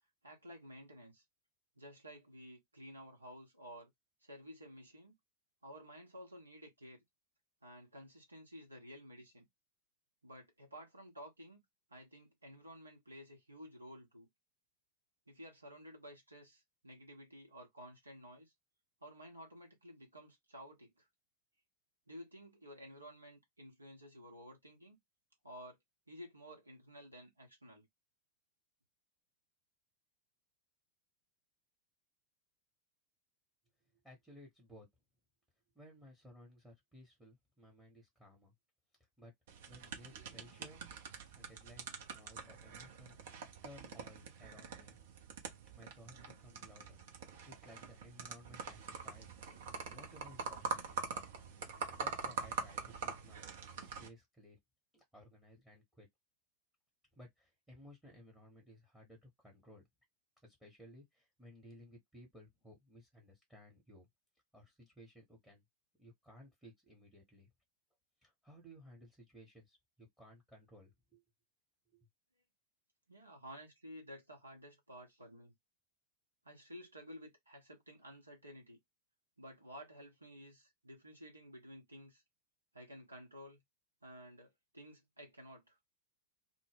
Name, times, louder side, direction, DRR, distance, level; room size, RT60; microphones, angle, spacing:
voice 1, 0.2-1.2 1.8-3.9 4.2-5.1 5.6-7.0 7.6-9.4 10.2-11.6 11.9-14.3 15.3-18.5 19.0-21.1 22.1-25.0 25.4-25.8 26.1-27.9 73.1-75.5 76.4-78.8 79.4-82.2 82.7-83.6 84.0-85.8, equal, 80° right, 0.9 m, -53 dB
voice 2, 34.0-34.9 35.7-38.5 39.2-39.3 39.7-40.8 41.3-43.2 43.6-45.0 45.7-47.0 47.4-49.5 49.9-51.3 51.9-53.4 53.8-54.6 54.9-56.1 57.1-59.9 60.4-64.1 64.5-65.6 66.0-67.5 68.2-71.2 71.9-72.1, equal, 5° right, 0.9 m, -58 dB
sound 1, 39.5-54.1, right 5 dB, 55° right, 0.6 m, -45 dB
2.1 x 2.1 x 3.3 m
figure-of-eight pair, 90°, 0 cm